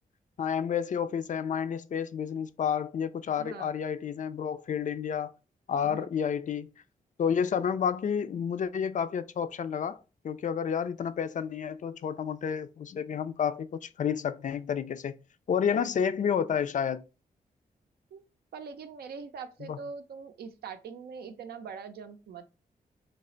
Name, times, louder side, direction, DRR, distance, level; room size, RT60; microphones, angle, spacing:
voice 1, 0.4-5.3 5.7-6.7 7.2-10.0 10.2-15.2 15.5-17.0 19.6-19.8, left 7 dB, 50° left, 0.4 m, -30 dB
voice 2, 3.4-3.7 5.8-6.1 18.1-18.2 18.5-22.5, right 5 dB, 80° right, 0.5 m, -42 dB
3.3 x 2.1 x 3.8 m
cardioid pair, 60°, 16 cm